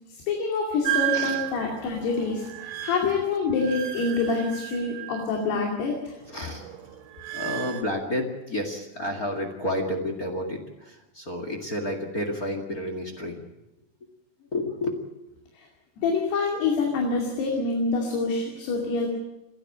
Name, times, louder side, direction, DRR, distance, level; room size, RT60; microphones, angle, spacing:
voice 1, 0.1-6.2 15.5-15.7 16.0-19.1, left 4 dB, 80° left, 0 dB, 4.6 m, -26 dB
sound 1, 0.8-5.6 5.9-7.8, right 15 dB, 80° right, 4.5 m, -33 dB
voice 2, 6.3-6.6 7.3-13.4 14.5-15.0, left 1 dB, 30° left, 3 dB, 1.8 m, -30 dB
29.0 x 11.5 x 8.6 m, 0.97 s
omnidirectional pair, 4.6 m